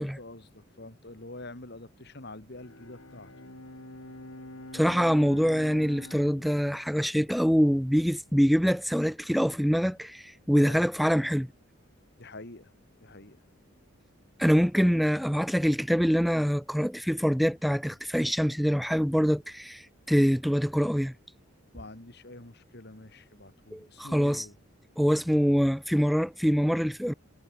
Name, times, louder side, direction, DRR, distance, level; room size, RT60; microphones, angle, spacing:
voice 1, 0.0-3.3 10.6-10.9 12.2-12.7 13.0-13.4 21.7-24.6, left 2 dB, 50° left, 2.3 m, -46 dB
Bowed string instrument, 2.5-8.0, left 1 dB, 75° left, 5.2 m, -47 dB
voice 2, 4.7-11.5 14.4-21.1 23.7-24.5 25.0-27.1, equal, ahead, 0.5 m, -25 dB
head